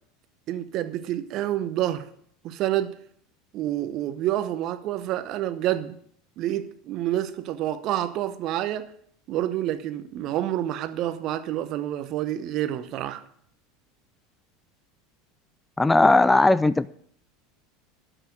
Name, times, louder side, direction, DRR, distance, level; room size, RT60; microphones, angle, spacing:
voice 1, 0.5-2.1 2.4-2.9 3.5-6.0 6.4-8.9 9.3-13.2, right 13 dB, 50° right, 0.9 m, -28 dB
voice 2, 15.8-16.9, left 2 dB, 10° left, 0.3 m, -18 dB
12.5 x 6.0 x 6.7 m
figure-of-eight pair, 75°, 0 cm